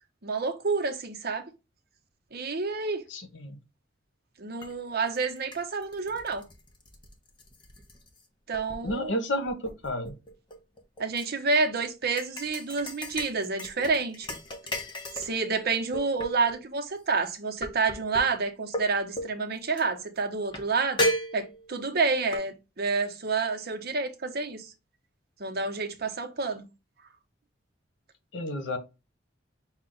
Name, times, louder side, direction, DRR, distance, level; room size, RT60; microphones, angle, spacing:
voice 1, 0.2-1.5 2.3-3.0 4.4-6.4 8.5-9.1 11.0-14.3 15.1-21.1 21.3-24.7 25.4-26.7, right 4 dB, 55° right, 0.8 m, -29 dB
voice 2, 3.1-3.6 8.8-10.1 28.3-28.8, left 1 dB, 75° left, 1.1 m, -31 dB
sound 1, 4.6-4.7 5.2-8.2 8.5-9.1 9.5-11.3 12.2-15.4 15.9-16.6 17.6-18.2 18.7-18.9 19.2-19.3 19.8-19.9 20.5-20.6 21.0-21.8 22.3-22.4, equal, 25° left, 0.8 m, -34 dB
5.7 x 2.3 x 3.8 m
head